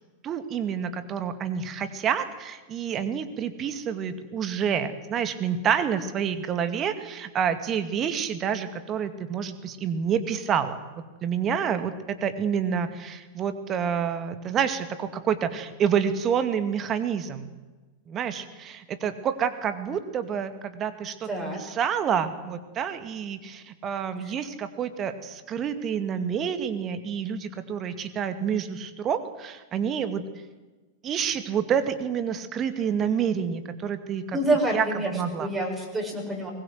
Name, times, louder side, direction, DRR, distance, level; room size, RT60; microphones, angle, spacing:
voice 1, 0.2-17.5 18.1-21.3 21.5-30.2 31.0-34.4 34.7-35.5, right 7 dB, 30° right, 10 dB, 2.3 m, -28 dB
voice 2, 21.3-21.6 34.3-36.5, right 1 dB, 10° right, -1 dB, 7.1 m, -27 dB
23.0 x 20.5 x 8.0 m, 1.2 s
figure-of-eight pair, 90°, 0 cm